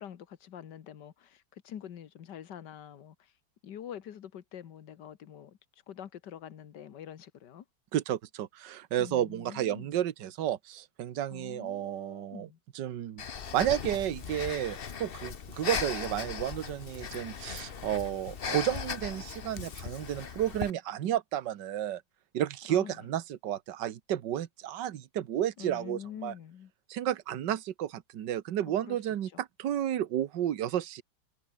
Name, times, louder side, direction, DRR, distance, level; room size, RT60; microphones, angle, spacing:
voice 1, 0.0-3.3 3.6-5.6 5.9-7.7 9.0-9.9 11.3-12.6 22.7-23.1 25.6-26.7 28.8-29.4, left 9 dB, 65° left, 1.9 m, -46 dB
voice 2, 7.9-12.5 12.7-13.2 13.5-22.0 22.3-26.3 26.9-31.0, right 11 dB, 65° right, 1.7 m, -32 dB
Breathing, 13.2-20.7, left 6 dB, 40° left, 0.9 m, -38 dB
omnidirectional pair, 2.1 m